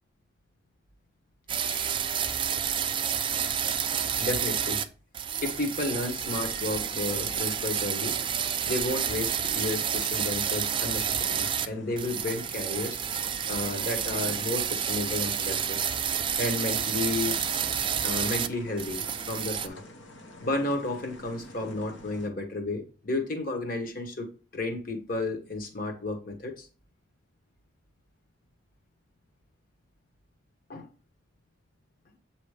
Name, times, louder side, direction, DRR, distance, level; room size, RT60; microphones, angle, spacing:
sound 1, 1.5-4.9 5.1-11.7 12.0-18.5 18.8-19.7, right 8 dB, 25° right, 0.4 m, -29 dB
voice 1, 1.6-1.9 4.2-4.8 5.4-8.2 8.6-13.0 13.5-15.8 16.3-17.4 18.0-19.8 20.4-24.3 24.5-26.7 30.7-30.9, left 2 dB, 45° left, 3 dB, 1.2 m, -32 dB
sound 2, 6.2-22.3, left 1 dB, 70° left, 0.9 m, -49 dB
8.2 x 3.0 x 4.8 m, 0.36 s
head